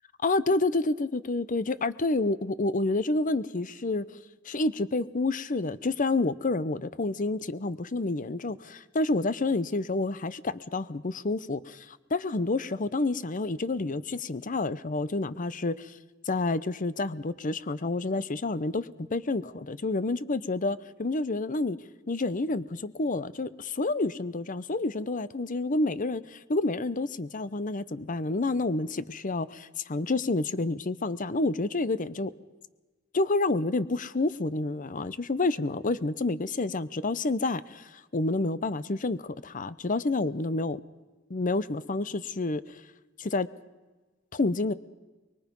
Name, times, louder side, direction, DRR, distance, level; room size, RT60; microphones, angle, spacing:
voice 1, 0.2-4.0 4.5-15.9 16.3-21.8 22.1-32.3 33.1-40.8 41.3-42.8 43.2-43.5 44.3-44.7, left 2 dB, 40° left, 16 dB, 0.8 m, -29 dB
24.0 x 22.5 x 5.4 m, 1.2 s
head